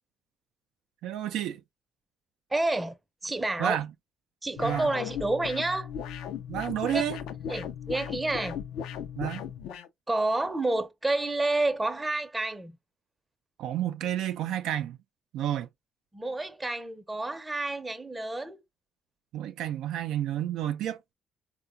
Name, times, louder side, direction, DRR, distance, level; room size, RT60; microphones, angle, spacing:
voice 1, 1.0-1.6 3.6-3.9 4.6-4.9 6.5-7.2 9.2-9.4 13.6-15.0 15.3-15.7 19.3-21.0, right 11 dB, 75° right, 0.3 m, -30 dB
voice 2, 2.5-3.0 3.2-3.8 4.4-5.9 6.9-7.1 7.5-8.6 10.1-12.8 16.1-18.6, right 2 dB, 15° right, 0.6 m, -29 dB
sound 1, 4.6-9.9, left 8 dB, 80° left, 0.4 m, -37 dB
3.7 x 2.2 x 2.5 m
supercardioid pair, 70°, 0 cm